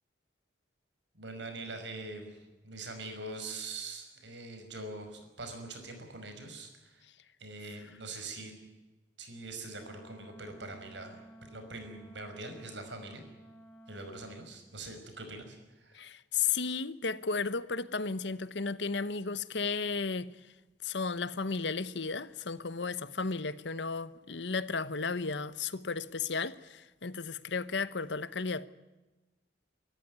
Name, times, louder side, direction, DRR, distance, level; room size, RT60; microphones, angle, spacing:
voice 1, 1.1-7.1 7.4-8.5 9.2-13.2 13.9-16.0, right 2 dB, 80° right, 5.6 m, -43 dB
Wind instrument woodwind instrument, 9.7-14.5, right 1 dB, 5° left, 3.7 m, -54 dB
voice 2, 15.9-20.3 20.8-28.7, left 4 dB, 75° left, 1.0 m, -34 dB
25.0 x 14.0 x 9.5 m
head